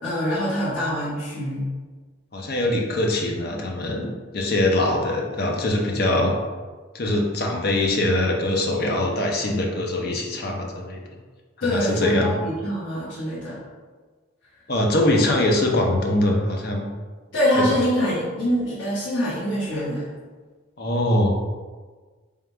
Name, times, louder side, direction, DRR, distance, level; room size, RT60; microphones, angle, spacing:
voice 1, 0.0-1.7 11.6-13.6 17.3-20.1, equal, 75° left, -10 dB, 1.1 m, -24 dB
voice 2, 2.3-6.3 6.9-11.0 11.6-12.4 14.7-16.8 17.6-17.7 20.8-21.3, left 1 dB, 50° left, 0 dB, 0.6 m, -22 dB
3.6 x 2.4 x 4.3 m, 1.4 s
head